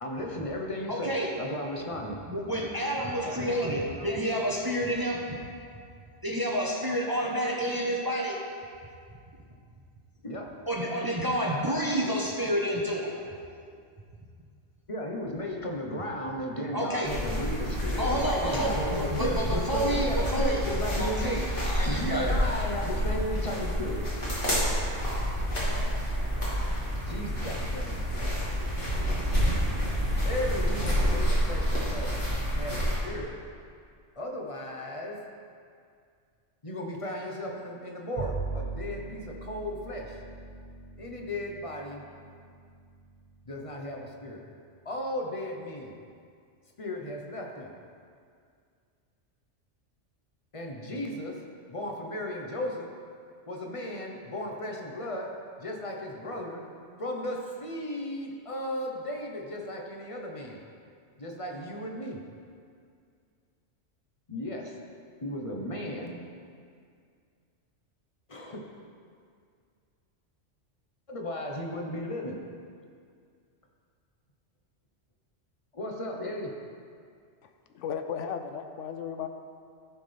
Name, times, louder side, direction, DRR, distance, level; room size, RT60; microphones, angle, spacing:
voice 1, 0.0-2.2 10.2-10.5 14.9-24.1 26.9-28.4 30.2-32.2 32.6-33.3 34.2-35.3 36.6-40.2 41.0-42.0 43.5-44.4 44.8-46.0 46.8-47.7 50.5-51.4 51.7-52.9 53.5-56.7 57.0-60.6 61.2-62.2 64.3-64.8 65.2-66.4 68.3-68.7 71.1-72.4 75.7-76.5, left 1 dB, 30° left, 0 dB, 1.0 m, -35 dB
voice 2, 0.9-1.3 2.3-5.2 6.2-8.4 10.7-13.2 16.7-17.1 18.0-20.6 21.0-21.4 21.6-22.4, equal, 20° right, -2 dB, 0.8 m, -29 dB
sound 1, 17.0-33.0, equal, 45° left, 2.4 m, -29 dB
Bowed string instrument, 38.2-44.6, right 3 dB, 50° right, 1.8 m, -41 dB
voice 3, 77.4-79.3, left 7 dB, 85° left, 7 dB, 1.0 m, -35 dB
14.5 x 5.8 x 3.4 m, 2.3 s
omnidirectional pair, 1.2 m